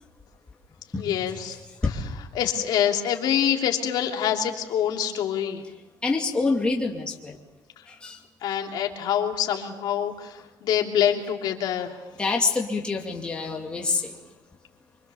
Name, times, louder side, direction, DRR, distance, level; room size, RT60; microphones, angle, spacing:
voice 1, 1.0-1.6 2.3-5.6 8.4-10.3 10.6-11.9, left 9 dB, 60° left, 2 dB, 3.1 m, -25 dB
voice 2, 6.0-7.4 7.9-8.2 12.2-14.2, left 3 dB, 10° left, -1 dB, 2.5 m, -26 dB
27.0 x 25.0 x 7.1 m, 1.0 s
cardioid pair, 180°, 8 cm